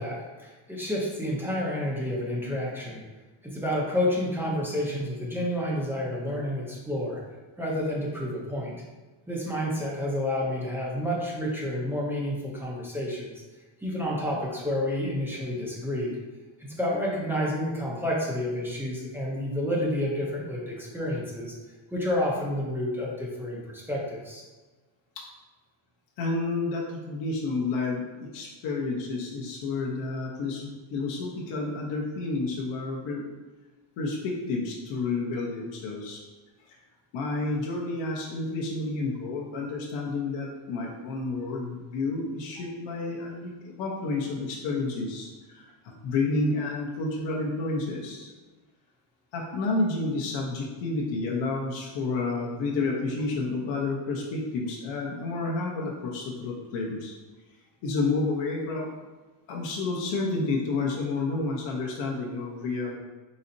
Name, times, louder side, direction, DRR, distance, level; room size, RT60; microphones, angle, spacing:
voice 1, 0.0-3.0 3.4-7.2 7.6-8.7 9.3-13.3 13.8-16.2 16.6-21.5 21.9-24.4, left 1 dB, 5° right, -4 dB, 0.4 m, -29 dB
voice 2, 26.2-33.2 34.0-36.2 36.7-36.8 37.1-48.3 49.3-57.1 57.8-58.9 59.5-63.0, left 3 dB, 65° left, -2 dB, 0.8 m, -30 dB
4.1 x 4.0 x 2.6 m, 1.2 s
cardioid pair, 165°, 47 cm